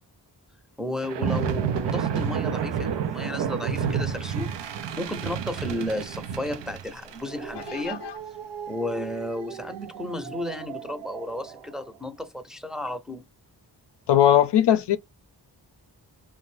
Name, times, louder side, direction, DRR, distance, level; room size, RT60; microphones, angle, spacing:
voice 1, 0.8-4.5 5.0-8.0 8.7-13.3, left 1 dB, ahead, 0.6 m, -33 dB
sound 1, 1.0-11.6, right 7 dB, 80° right, 0.5 m, -31 dB
voice 2, 7.5-8.1 14.1-15.0, left 11 dB, 75° left, 0.5 m, -20 dB
2.5 x 2.1 x 3.1 m
cardioid pair, 55°, 42 cm